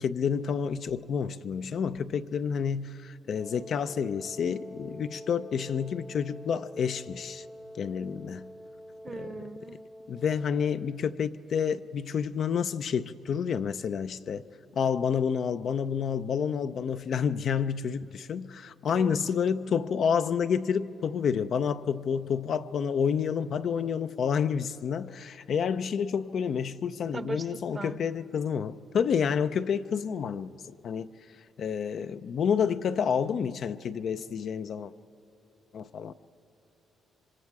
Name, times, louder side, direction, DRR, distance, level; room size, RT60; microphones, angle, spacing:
voice 1, 0.0-7.4 7.8-8.5 10.1-14.4 14.8-30.5 30.8-31.1 31.6-34.9 35.7-36.1, left 7 dB, 60° left, 0.5 m, -29 dB
Wind instrument woodwind instrument, 3.3-11.2, equal, 10° left, 0.7 m, -46 dB
voice 2, 9.0-9.8 18.9-19.2 27.1-28.0, right 4 dB, 30° right, 0.8 m, -39 dB
26.5 x 25.0 x 4.8 m
cardioid pair, 90°, 0 cm